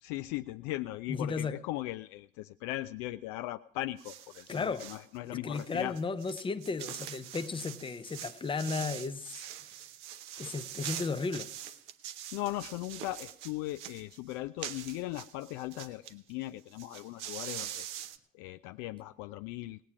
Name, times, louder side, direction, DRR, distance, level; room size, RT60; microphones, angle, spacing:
voice 1, 0.0-6.0 12.3-17.9 18.3-19.8, left 17 dB, 50° left, 0.5 m, -38 dB
voice 2, 1.1-1.6 4.5-4.9 5.2-9.3 10.4-11.5, left 4 dB, 15° left, 0.7 m, -34 dB
sound 1, 4.0-5.1 5.5-16.1 16.4-16.5 16.7-18.2, right 11 dB, 60° right, 0.9 m, -44 dB
18.5 x 9.0 x 4.8 m
figure-of-eight pair, 60°, 39 cm